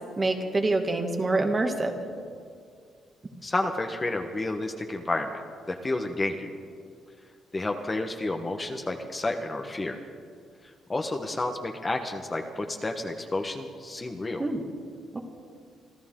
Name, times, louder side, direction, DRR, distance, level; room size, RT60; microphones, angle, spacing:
voice 1, 0.2-1.9 14.4-14.6 15.1-15.2, right 2 dB, 25° right, 4 dB, 1.7 m, -26 dB
voice 2, 3.4-5.3 5.7-6.5 7.5-10.0 10.9-14.4, left 2 dB, 25° left, 4 dB, 1.2 m, -30 dB
25.5 x 14.0 x 3.8 m, 2.2 s
cardioid pair, 90°, 0 cm